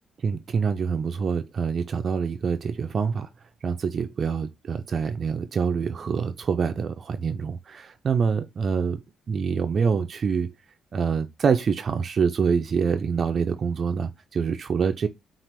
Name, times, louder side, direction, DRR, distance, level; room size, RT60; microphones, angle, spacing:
voice 1, 0.2-3.3 3.6-10.5 10.9-15.1, right 6 dB, 50° right, 0.4 m, -26 dB
5.8 x 2.4 x 3.4 m
cardioid pair, 90°, 0 cm